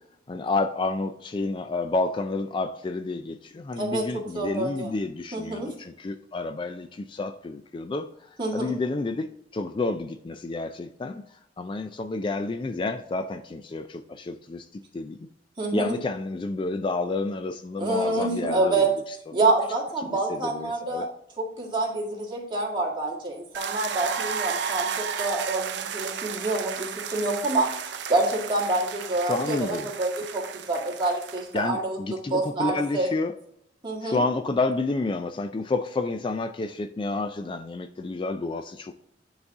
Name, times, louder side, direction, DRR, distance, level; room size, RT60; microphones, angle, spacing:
voice 1, 0.3-15.3 15.7-18.9 20.0-21.1 29.2-29.9 31.5-33.3 34.0-39.0, left 3 dB, 30° left, 8 dB, 0.3 m, -30 dB
voice 2, 4.3-4.9 5.3-5.7 8.4-8.7 15.6-16.0 17.8-18.9 19.3-21.1 21.4-27.7 28.1-32.0 32.3-33.1 33.8-34.2, right 2 dB, 30° right, -2 dB, 1.9 m, -27 dB
sound 1, 23.5-31.7, right 7 dB, 80° right, 0.5 m, -33 dB
9.7 x 4.0 x 3.5 m, 0.72 s
head